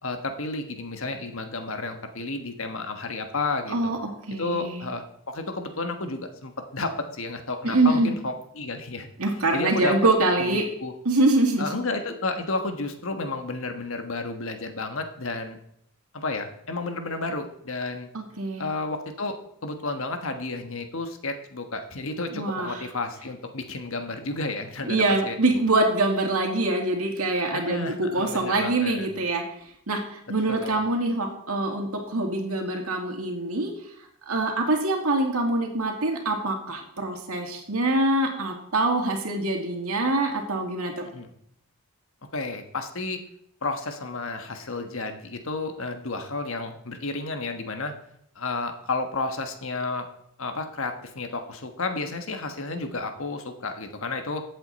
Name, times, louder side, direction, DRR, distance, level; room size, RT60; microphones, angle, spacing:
voice 1, 0.0-3.9 4.4-9.1 9.5-10.0 10.4-10.9 11.6-15.6 16.1-18.1 18.6-25.4 27.5-29.1 30.5-30.8 41.1-41.3 42.3-43.2 43.6-47.9 48.3-50.1 50.4-54.4, left 3 dB, 65° left, 6 dB, 1.4 m, -32 dB
voice 2, 3.7-4.8 7.6-8.1 9.2-10.6 11.0-11.8 18.1-18.7 22.3-22.8 24.8-29.4 29.9-33.7 34.3-41.0, right 2 dB, 90° right, 2 dB, 2.3 m, -24 dB
14.5 x 8.1 x 4.2 m, 0.72 s
head